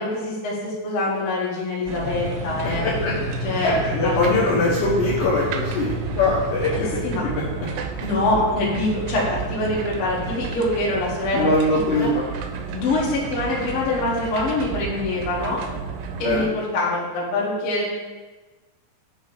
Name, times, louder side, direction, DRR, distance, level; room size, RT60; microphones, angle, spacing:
voice 1, 0.0-2.8 3.4-3.7 4.0-4.2 6.7-7.2 8.0-11.5 11.9-12.1 12.7-15.6 16.2-17.9, left 2 dB, 65° left, -5 dB, 1.4 m, -24 dB
sound 1, 1.9-16.4, right 5 dB, 80° right, 2.5 m, -33 dB
sound 2, 2.0-10.3, equal, 40° right, 1.3 m, -32 dB
voice 2, 3.6-6.9 7.2-7.3 11.3-12.2 16.2-16.5, left 2 dB, 85° left, -7 dB, 1.9 m, -22 dB
8.1 x 3.2 x 6.2 m, 1.2 s
omnidirectional pair, 5.4 m